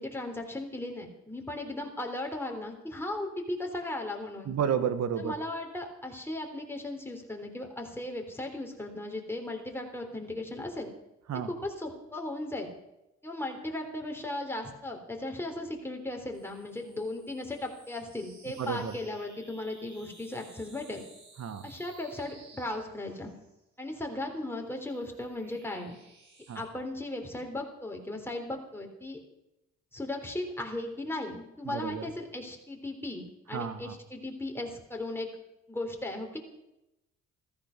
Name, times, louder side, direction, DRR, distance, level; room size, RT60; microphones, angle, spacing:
voice 1, 0.0-4.5 5.2-10.9 11.5-12.7 13.2-21.0 21.6-23.3 23.8-26.0 26.5-29.2 29.9-35.3 35.7-36.4, left 1 dB, 10° left, 2 dB, 3.6 m, -37 dB
voice 2, 4.4-5.3 11.3-11.5 18.6-18.9 21.4-21.7 26.5-26.6 31.6-32.1 33.5-33.9, right 8 dB, 60° right, 11 dB, 1.6 m, -31 dB
sound 1, 16.3-23.6 24.5-26.7, right 2 dB, 75° right, 7.9 m, -57 dB
14.5 x 14.0 x 6.0 m, 0.91 s
cardioid pair, 90°, 30 cm